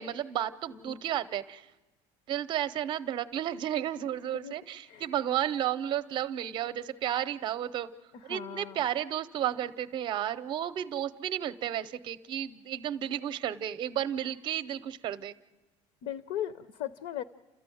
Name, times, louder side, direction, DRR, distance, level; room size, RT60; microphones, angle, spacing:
voice 1, 0.0-1.6 2.3-7.9 8.2-15.3, right 11 dB, 35° right, 13 dB, 0.7 m, -32 dB
voice 2, 0.7-1.0 4.3-4.5 4.9-5.1 8.1-8.8 16.0-17.2, left 10 dB, 60° left, 14 dB, 0.7 m, -38 dB
30.0 x 14.0 x 9.2 m, 1.1 s
cardioid pair, 170°, 14 cm